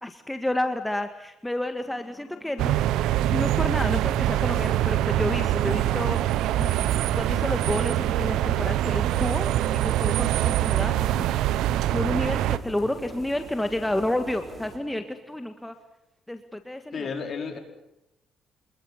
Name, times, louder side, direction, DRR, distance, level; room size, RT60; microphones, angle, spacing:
voice 1, 0.0-2.8 3.3-6.7 7.2-11.3 11.9-15.7 16.3-17.1, left 1 dB, 10° left, 7 dB, 1.8 m, -30 dB
Growling, 1.8-3.6 4.1-8.3 9.2-15.8, right 1 dB, 15° right, 3.5 m, -50 dB
sound 1, 2.6-12.6, right 13 dB, 90° right, 0.8 m, -24 dB
sound 2, 6.6-14.8, right 3 dB, 35° right, 5.8 m, -42 dB
voice 2, 16.9-17.6, left 5 dB, 50° left, 5 dB, 4.7 m, -33 dB
26.0 x 21.5 x 7.4 m, 0.88 s
cardioid pair, 90°, 0 cm